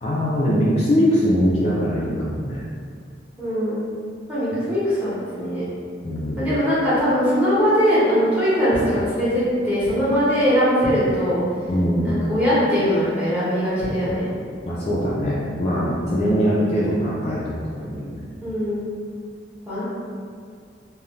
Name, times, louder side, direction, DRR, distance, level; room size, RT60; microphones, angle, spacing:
voice 1, 0.0-2.6 6.0-6.4 11.7-12.1 14.6-18.3, equal, 35° left, -7 dB, 0.3 m, -22 dB
voice 2, 3.4-3.9 4.3-5.7 6.4-11.4 12.0-14.3 16.1-16.4 18.4-18.9 19.6-19.8, equal, 10° right, -12 dB, 0.9 m, -21 dB
2.5 x 2.1 x 3.0 m, 2.2 s
head